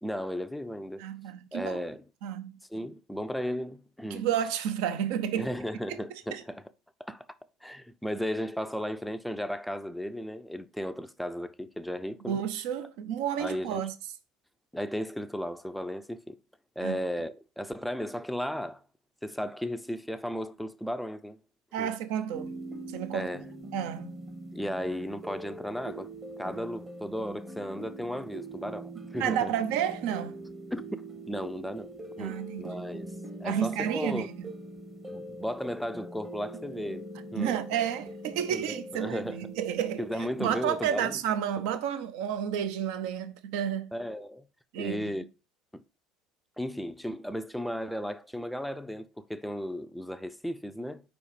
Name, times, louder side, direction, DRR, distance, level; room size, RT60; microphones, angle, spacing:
voice 1, 0.0-1.0 1.5-2.0 2.7-4.2 5.3-6.6 7.0-7.3 7.6-12.4 13.4-13.9 14.7-16.4 16.8-18.8 19.2-21.4 21.8-21.9 23.1-23.5 24.5-26.1 26.4-29.5 30.7-33.1 33.4-34.3 35.1-37.6 38.5-39.4 40.0-41.2 41.6-41.7 43.9-44.5 44.8-45.3 45.7-45.8 46.6-51.0, equal, ahead, 0.5 m, -35 dB
voice 2, 1.0-1.8 2.2-2.5 4.1-5.5 6.3-6.4 12.3-13.9 16.8-16.9 21.7-22.5 22.9-23.3 23.7-24.1 29.2-30.3 32.2-32.7 33.4-34.3 37.4-40.0 40.4-43.9 44.7-45.1, right 9 dB, 65° right, 0.7 m, -31 dB
sound 1, 22.3-41.2, right 2 dB, 20° right, 0.9 m, -43 dB
4.8 x 4.2 x 4.9 m
figure-of-eight pair, 65°, 0 cm